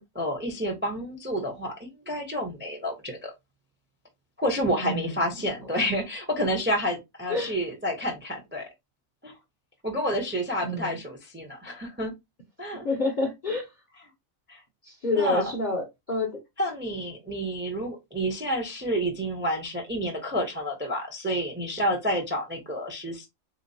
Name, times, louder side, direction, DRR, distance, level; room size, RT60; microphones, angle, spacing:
voice 1, 0.0-3.3 4.4-8.7 9.2-9.3 9.8-12.1 12.6-12.8 14.5-14.6 15.1-15.5 16.6-23.3, equal, 15° right, 0.5 m, -29 dB
voice 2, 4.8-5.2 7.3-7.5 10.6-11.0 12.7-13.7 14.8-16.4, left 2 dB, 45° left, 0.6 m, -28 dB
3.6 x 2.9 x 2.6 m
omnidirectional pair, 1.5 m